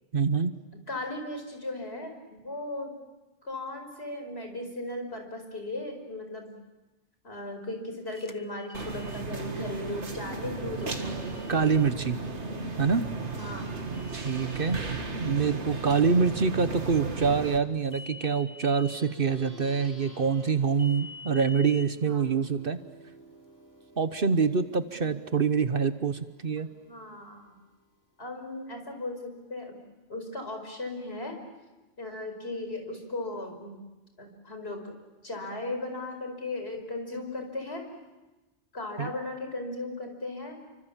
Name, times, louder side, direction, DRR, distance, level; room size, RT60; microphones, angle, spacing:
voice 1, 0.1-0.5 11.5-12.2 12.8-13.0 14.1-14.8 15.2-22.8 24.0-26.7 39.0-39.1, right 5 dB, 50° right, 11 dB, 1.2 m, -25 dB
voice 2, 0.9-2.9 3.4-6.5 7.2-11.2 13.4-13.7 16.2-16.3 22.1-22.3 24.9-25.1 26.9-27.6 28.2-29.8 30.1-31.4 32.0-33.8 34.2-35.0 35.2-37.8 38.7-40.6, left 2 dB, 60° left, 4 dB, 5.5 m, -37 dB
sound 1, 8.1-9.2 10.8-11.9 13.9-15.0 17.9-19.0 20.8-21.9, left 3 dB, 20° left, 0.8 m, -47 dB
sound 2, 8.7-17.6, right 4 dB, 75° right, 2.4 m, -35 dB
Plucked string instrument, 18.7-28.4, equal, 90° left, 5.0 m, -54 dB
30.0 x 25.0 x 7.4 m, 1.1 s
omnidirectional pair, 1.2 m